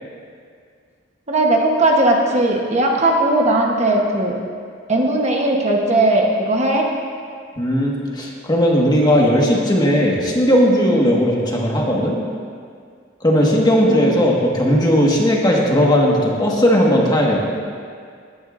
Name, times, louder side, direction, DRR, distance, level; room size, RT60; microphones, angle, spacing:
voice 1, 1.3-4.4 4.9-6.8 13.9-14.0, right 1 dB, 35° right, 0 dB, 1.1 m, -17 dB
voice 2, 7.6-12.2 13.2-17.4, equal, 20° left, -3 dB, 1.6 m, -16 dB
19.5 x 10.5 x 2.6 m, 2.2 s
head